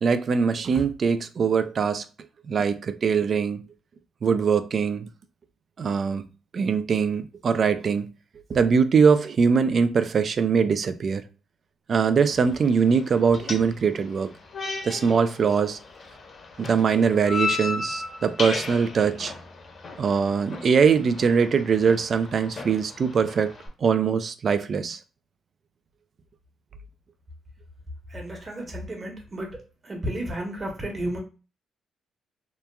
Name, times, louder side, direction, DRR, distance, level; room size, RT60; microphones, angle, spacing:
voice 1, 0.0-2.0 2.5-3.6 4.2-5.1 5.8-6.2 6.5-8.1 8.5-11.2 11.9-14.3 14.8-15.8 16.6-19.3 20.0-23.5 23.8-25.0, right 6 dB, 50° right, 0.3 m, -22 dB
sound 1, 12.2-23.7, left 3 dB, 50° left, 0.9 m, -36 dB
voice 2, 28.1-29.6 29.8-31.2, right 1 dB, 30° right, 1.1 m, -32 dB
2.8 x 2.3 x 2.3 m
cardioid pair, 90°, 0 cm